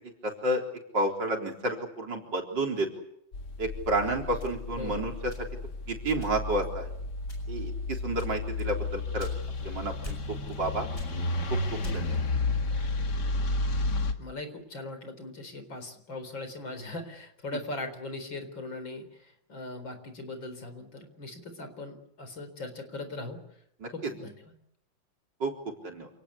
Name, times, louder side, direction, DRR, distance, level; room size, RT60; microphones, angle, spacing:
voice 1, 0.2-0.6 0.9-2.9 3.6-5.1 5.9-6.9 7.5-7.7 8.0-9.3 9.6-10.2 10.6-11.3 11.9-12.2 23.8-23.9 25.4-25.5 25.8-26.1, right 1 dB, 65° right, 2 dB, 4.6 m, -30 dB
sound 1, 3.3-14.1, left 2 dB, 60° left, 2.5 m, -32 dB
sound 2, 4.4-5.8 6.2-6.7 7.2-7.7 8.2-9.7 10.0-10.6 10.9-12.3, left 3 dB, 30° left, 8.0 m, -44 dB
voice 2, 4.8-5.2 14.2-23.4 23.9-24.5, left 2 dB, 75° left, 9 dB, 4.9 m, -40 dB
28.0 x 19.0 x 8.4 m, 0.72 s
omnidirectional pair, 2.1 m